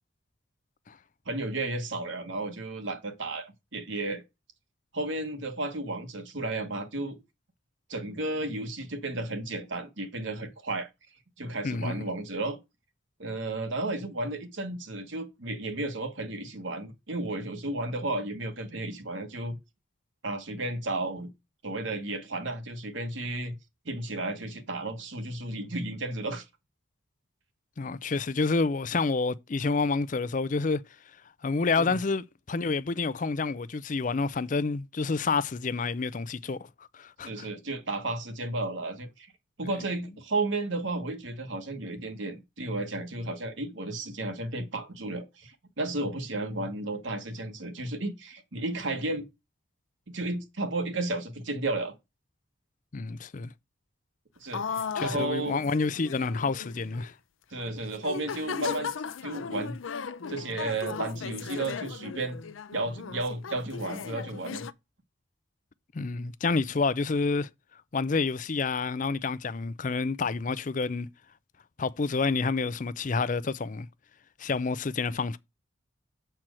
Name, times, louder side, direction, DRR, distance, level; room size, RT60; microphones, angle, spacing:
voice 1, 1.2-4.2 4.9-7.2 7.9-10.9 11.4-12.6 13.2-19.6 20.2-21.3 21.6-23.6 23.8-26.4 31.8-32.0 37.2-39.3 39.6-49.2 50.1-51.9 54.4-55.6 57.5-58.9 59.2-59.8 60.3-62.4 62.7-64.7, right 2 dB, 70° right, 1.4 m, -33 dB
voice 2, 11.6-12.1 27.8-30.8 31.4-36.6 36.9-37.5 46.5-46.6 52.9-53.5 54.9-57.1 65.9-67.5 67.9-71.1 71.8-73.9 74.4-75.4, left 4 dB, 40° left, 0.5 m, -28 dB
sound 1, 54.5-57.1 57.6-57.7 58.0-64.7, left 6 dB, 85° left, 0.6 m, -37 dB
7.5 x 4.5 x 6.2 m
head